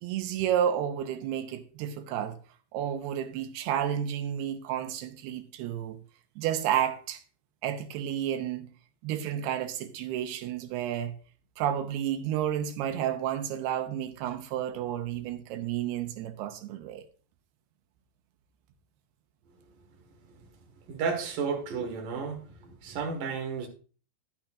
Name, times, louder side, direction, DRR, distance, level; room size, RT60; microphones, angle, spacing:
voice 1, 0.0-2.4 2.7-6.0 6.4-7.2 7.6-8.7 9.0-11.1 11.6-17.0, right 10 dB, 85° right, 2.8 m, -31 dB
voice 2, 20.9-23.7, right 5 dB, 60° right, 3.1 m, -32 dB
10.5 x 10.0 x 2.5 m
omnidirectional pair, 4.6 m